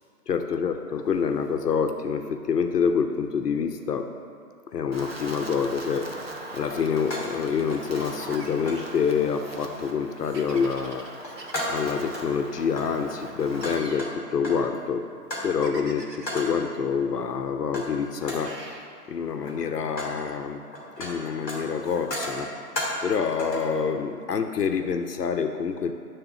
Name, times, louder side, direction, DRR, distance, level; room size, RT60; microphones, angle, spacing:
voice 1, 0.3-4.1 4.7-11.1 11.7-15.0 15.4-18.6 19.1-20.6 21.0-22.5 23.0-25.9, left 6 dB, 75° left, 6 dB, 0.7 m, -27 dB
Wind, 4.9-13.8, right 2 dB, 40° right, 0.6 m, -40 dB
sound 1, 6.6-7.4 7.7-8.3 8.6-8.9 9.5-9.8 10.2-10.7 11.0-12.3 12.7-14.7 15.3-15.6 16.2-16.6 17.7-17.9 18.2-18.6 19.3-20.2 20.5-23.1 23.4-23.7, left 1 dB, ahead, 0.9 m, -35 dB
sound 2, 8.2-9.0 10.3-12.1 13.6-14.1 15.6-16.5 18.4-18.9, right 2 dB, 85° right, 1.5 m, -43 dB
10.0 x 3.6 x 6.9 m, 2.4 s
hypercardioid pair, 175°, 48 cm